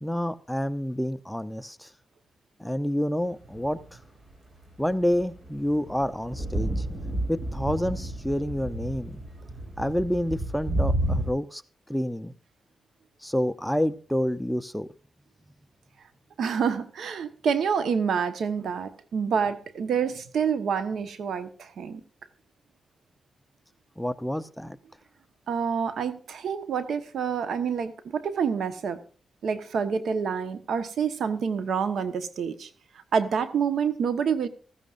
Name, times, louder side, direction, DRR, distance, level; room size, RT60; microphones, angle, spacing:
voice 1, 0.0-1.9 2.6-3.8 4.8-6.7 7.3-9.2 9.8-11.6 11.9-12.3 13.2-14.9 24.0-24.8, equal, 5° left, 0.7 m, -28 dB
sound 1, 3.5-4.0 4.9-11.3, right 1 dB, 35° right, 5.3 m, -31 dB
voice 2, 16.4-22.0 25.5-29.0 29.4-32.7 33.1-34.5, right 6 dB, 80° right, 1.3 m, -27 dB
15.5 x 14.5 x 2.6 m
cardioid pair, 75°, 0 cm